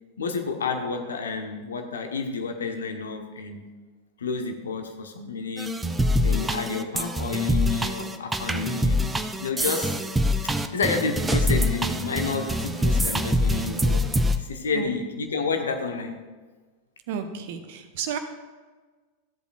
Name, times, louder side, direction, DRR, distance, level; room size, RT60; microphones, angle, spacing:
voice 1, 0.2-3.7 4.2-5.8 6.2-9.1 9.4-10.1 10.7-16.2, left 4 dB, 65° left, 5 dB, 1.1 m, -30 dB
sound 1, 5.6-14.4, equal, 10° right, 0.6 m, -25 dB
voice 2, 17.1-18.2, right 7 dB, 50° right, 8 dB, 0.9 m, -32 dB
14.0 x 8.2 x 2.5 m, 1.3 s
figure-of-eight pair, 90°, 0 cm